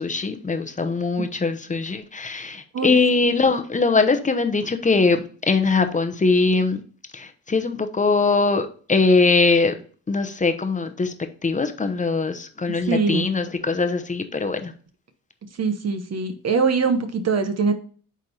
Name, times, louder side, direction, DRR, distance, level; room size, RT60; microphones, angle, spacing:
voice 1, 0.0-6.8 7.1-9.7 10.1-11.1 11.4-14.7, left 3 dB, 20° left, 8 dB, 0.9 m, -21 dB
voice 2, 12.9-13.3 15.6-17.7, right 4 dB, 45° right, 7 dB, 1.0 m, -22 dB
8.9 x 3.5 x 4.3 m, 0.43 s
cardioid pair, 90°, 35 cm